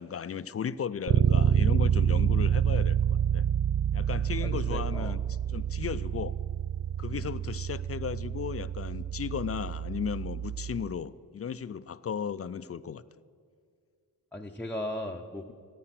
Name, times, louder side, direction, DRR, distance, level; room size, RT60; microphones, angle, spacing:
voice 1, 0.0-3.5 3.9-5.2 5.5-6.4 7.0-13.0, left 7 dB, 40° left, 15 dB, 0.4 m, -35 dB
Bass guitar, 1.1-10.9, right 8 dB, 40° right, 0.4 m, -28 dB
voice 2, 4.4-5.2 7.1-7.3 14.3-15.4, left 1 dB, 5° left, 0 dB, 0.6 m, -37 dB
14.0 x 8.8 x 5.9 m, 2.2 s
cardioid pair, 90°, 40 cm